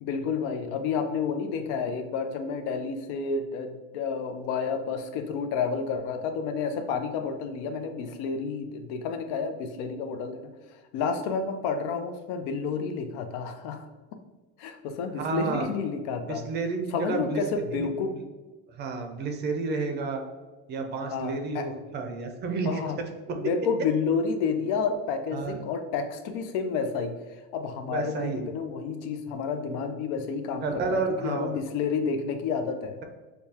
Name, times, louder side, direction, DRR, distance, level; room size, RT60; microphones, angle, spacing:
voice 1, 0.0-10.5 10.9-13.9 14.6-16.4 16.9-18.1 21.1-21.7 22.6-23.0 23.3-27.1 27.5-33.0, left 5 dB, 85° left, 7 dB, 0.7 m, -30 dB
voice 2, 15.2-15.7 16.3-17.4 17.7-17.9 18.1-18.2 18.7-20.2 20.7-22.8 23.3-23.4 25.3-25.6 27.9-28.5 30.6-31.6, right 4 dB, 30° right, 4 dB, 0.5 m, -31 dB
6.7 x 2.3 x 2.8 m, 1.3 s
cardioid pair, 170°, 32 cm